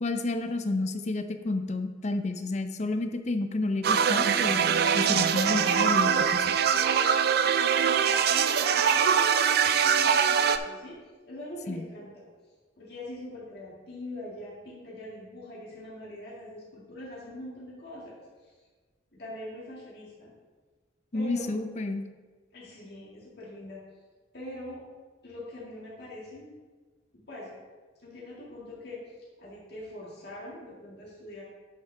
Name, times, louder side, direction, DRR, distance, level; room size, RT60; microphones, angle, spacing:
voice 1, 0.0-4.6 4.9-6.4 11.7-11.8 21.1-22.1, left 2 dB, 40° left, 8 dB, 0.5 m, -30 dB
sound 1, 3.8-10.6, right 7 dB, 55° right, 0.4 m, -23 dB
voice 2, 6.7-11.0 11.2-12.2 12.8-18.5 19.1-20.3 21.1-21.5 22.5-23.8 24.3-24.8 25.2-26.6 27.1-27.5 28.0-29.0 29.4-31.4, left 1 dB, 60° left, -6 dB, 2.0 m, -43 dB
9.4 x 5.8 x 3.4 m, 1.4 s
head